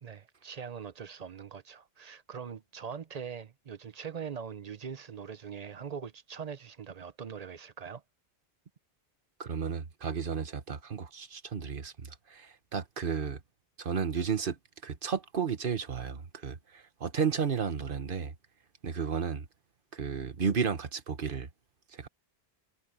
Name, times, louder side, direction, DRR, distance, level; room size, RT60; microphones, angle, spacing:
voice 1, 0.0-8.0, right 7 dB, 40° right, 0.8 m, -42 dB
voice 2, 9.4-13.4 13.8-14.5 14.8-18.3 18.8-19.4 19.9-21.5 22.0-22.1, right 6 dB, 60° right, 1.3 m, -33 dB
omnidirectional pair, 1.0 m